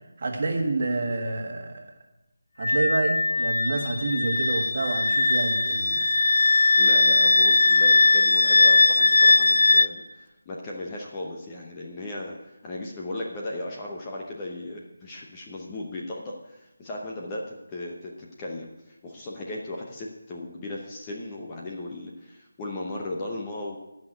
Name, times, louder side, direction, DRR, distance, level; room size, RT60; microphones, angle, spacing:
voice 1, 0.2-1.9 2.6-6.1, right 2 dB, 40° right, 3 dB, 1.6 m, -28 dB
Wind instrument woodwind instrument, 2.6-9.9, left 3 dB, 65° left, 0.5 m, -20 dB
voice 2, 6.8-23.8, left 2 dB, 15° left, -2 dB, 0.9 m, -36 dB
12.0 x 5.9 x 8.9 m, 0.99 s
figure-of-eight pair, 175°, 0 cm